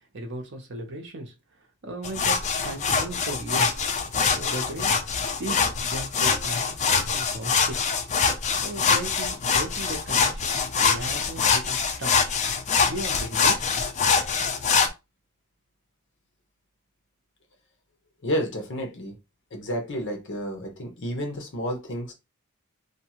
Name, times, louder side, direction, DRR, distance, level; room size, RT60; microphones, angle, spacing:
voice 1, 0.0-1.3 1.8-3.8 4.3-5.0 5.4-7.8 8.6-12.2 12.8-13.9, right 1 dB, 55° right, 0.8 m, -36 dB
sound 1, 2.0-14.9, left 5 dB, 35° left, 0.4 m, -24 dB
voice 2, 18.2-19.1 19.5-22.1, equal, 60° left, 0.8 m, -30 dB
2.7 x 2.3 x 2.9 m
head